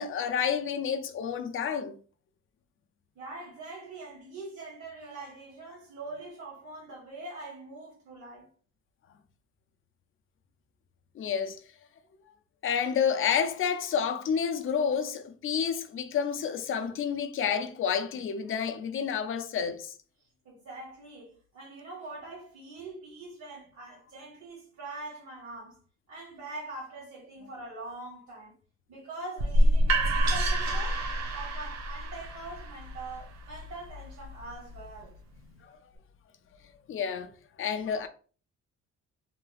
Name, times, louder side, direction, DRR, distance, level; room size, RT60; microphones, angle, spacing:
voice 1, 0.0-2.0 11.2-11.6 12.6-19.9 36.9-37.3 37.6-38.1, left 7 dB, 45° left, 0.4 m, -29 dB
voice 2, 3.1-8.5 20.4-25.8 26.1-28.5 28.9-31.1 31.3-35.1, right 2 dB, 80° right, 1.5 m, -43 dB
sound 1, 29.4-35.2, right 1 dB, 65° right, 0.6 m, -28 dB
3.1 x 2.8 x 2.3 m
cardioid pair, 115°, 29 cm